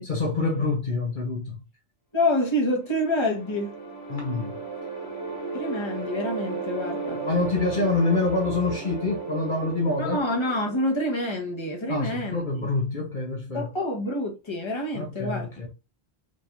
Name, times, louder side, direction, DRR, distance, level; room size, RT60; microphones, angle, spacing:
voice 1, 0.0-1.6 4.1-4.6 7.2-10.2 11.9-13.7 14.9-15.7, left 3 dB, 50° left, 1.1 m, -26 dB
voice 2, 2.1-3.8 5.5-7.2 10.0-12.7 13.5-15.5, left 1 dB, 25° left, 1.2 m, -27 dB
sound 1, 2.6-11.8, right 4 dB, 80° left, 1.8 m, -35 dB
5.4 x 3.4 x 2.5 m
omnidirectional pair, 1.1 m